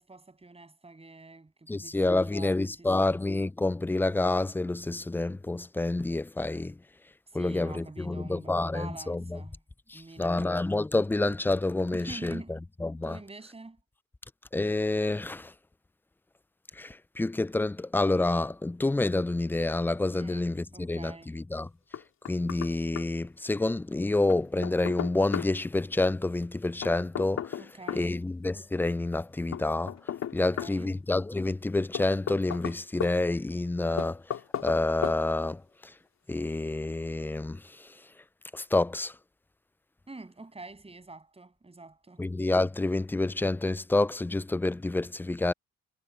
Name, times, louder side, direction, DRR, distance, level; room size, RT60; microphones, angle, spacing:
voice 1, 0.0-3.1 7.3-9.6 9.9-10.5 11.9-12.6 13.0-13.8 20.1-21.3 27.6-28.2 30.4-31.0 40.1-42.2, right 3 dB, 20° right, 7.8 m, -46 dB
voice 2, 1.7-6.7 7.3-9.4 9.9-12.4 12.8-13.2 14.5-15.5 16.8-21.7 22.3-27.6 27.9-29.9 30.3-34.2 34.6-35.6 36.3-37.6 38.5-39.1 42.2-45.5, left 2 dB, 5° left, 0.3 m, -28 dB
Knock, 21.9-22.7 23.0-23.1 24.3-25.5 26.8-28.1 29.5-30.8 31.9-33.1 34.0-34.8 35.0-35.2, left 9 dB, 65° left, 2.9 m, -34 dB
cardioid pair, 90°, 30 cm